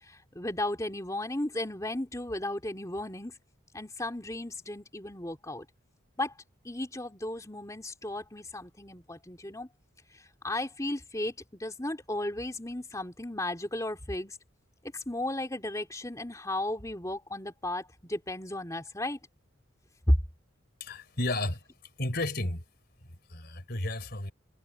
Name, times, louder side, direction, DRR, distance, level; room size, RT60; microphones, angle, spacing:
voice 1, 0.0-3.4 3.7-5.6 6.2-6.3 6.6-9.7 10.1-14.4 14.8-19.2 20.1-20.2, left 1 dB, 15° left, 3.2 m, -34 dB
voice 2, 20.8-21.6 22.0-22.6 23.3-24.3, left 1 dB, 50° left, 4.1 m, -32 dB
head